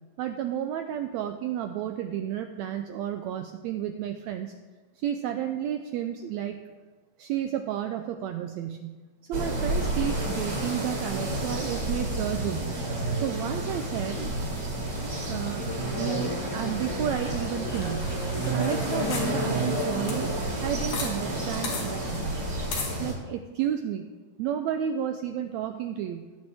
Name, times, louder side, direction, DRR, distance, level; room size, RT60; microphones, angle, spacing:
voice 1, 0.2-4.5 5.0-6.6 7.2-9.0 9.3-12.8 13.2-14.3 15.1-15.6 16.0-18.2 18.5-20.3 20.6-22.4 23.0-24.1 24.4-26.3, right 10 dB, 85° right, 6 dB, 1.6 m, -32 dB
sound 1, 9.3-23.1, right 1 dB, 50° right, 5.1 m, -30 dB
sound 2, 17.2-21.1 21.4-21.5 21.6-21.8 22.7-22.9, left 4 dB, 85° left, 3.7 m, -37 dB
18.0 x 8.2 x 3.5 m, 1.3 s
omnidirectional pair, 3.7 m